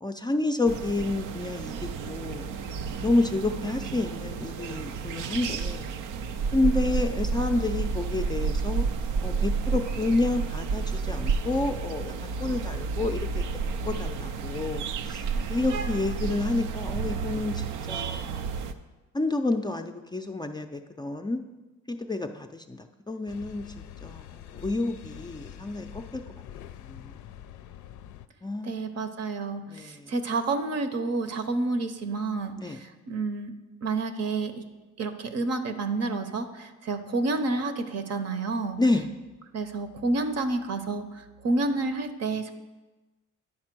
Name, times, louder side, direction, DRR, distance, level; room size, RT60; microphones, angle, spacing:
voice 1, 0.0-2.5 3.0-5.9 6.5-8.9 9.2-13.5 13.9-15.2 15.5-18.4 19.1-21.4 21.9-23.6 24.0-26.2 26.8-27.1 28.4-28.7 29.7-30.1 32.6-32.8 38.8-39.1, left 2 dB, 15° left, 5 dB, 0.4 m, -29 dB
sound 1, 0.7-18.7, right 5 dB, 85° right, 0.5 m, -31 dB
sound 2, 23.3-28.3, left 10 dB, 75° left, 0.5 m, -45 dB
voice 2, 28.6-33.5 33.8-34.6 35.0-38.8 39.5-42.5, right 3 dB, 55° right, 9 dB, 0.8 m, -29 dB
9.8 x 4.3 x 6.0 m, 1.2 s
cardioid pair, 90°, 30 cm